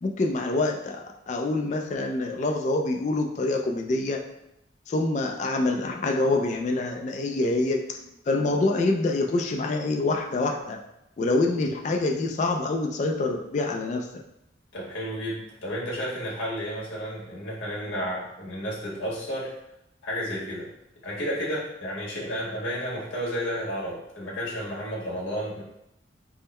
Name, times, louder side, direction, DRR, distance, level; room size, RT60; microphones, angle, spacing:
voice 1, 0.0-4.2 4.9-8.0 8.3-10.8 11.2-14.1, left 2 dB, 40° left, 3 dB, 0.3 m, -26 dB
voice 2, 14.7-19.5 20.0-20.7 21.0-25.6, equal, 80° left, -5 dB, 1.4 m, -32 dB
3.6 x 2.0 x 4.2 m, 0.84 s
head